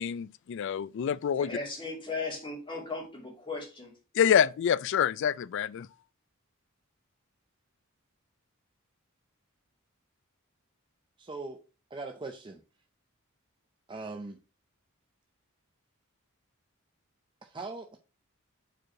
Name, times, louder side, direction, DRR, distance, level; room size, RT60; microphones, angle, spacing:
voice 1, 0.0-1.5 4.1-5.9, left 8 dB, 60° left, 0.3 m, -26 dB
voice 2, 1.4-3.9, left 3 dB, 25° left, 2.6 m, -37 dB
voice 3, 11.2-11.6 11.9-12.6 13.9-14.4 17.4-18.0, right 3 dB, 25° right, 0.5 m, -40 dB
5.0 x 4.6 x 4.7 m
head